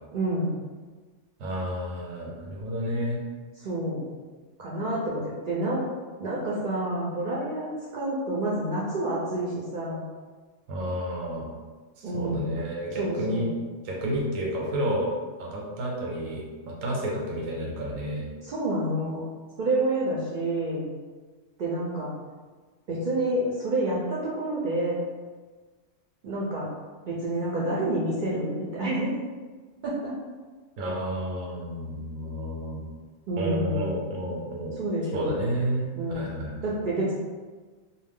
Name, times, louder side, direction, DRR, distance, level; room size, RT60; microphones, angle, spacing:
voice 1, 0.1-0.5 3.6-4.1 4.6-5.8 6.2-10.0 12.0-12.5 13.0-13.5 18.4-19.2 19.6-20.9 21.6-22.1 22.9-25.0 26.2-26.7 27.1-29.1 29.8-30.1 33.3-34.1 34.8-35.4 36.0-36.3 36.6-37.1, right 1 dB, 60° right, -5 dB, 0.5 m, -28 dB
voice 2, 1.4-3.2 10.7-11.5 12.0-13.5 13.8-15.1 15.4-18.3 30.8-32.8 33.4-34.7 35.1-36.6, right 1 dB, 90° right, -2 dB, 1.0 m, -31 dB
2.3 x 2.1 x 3.5 m, 1.4 s
omnidirectional pair, 1.3 m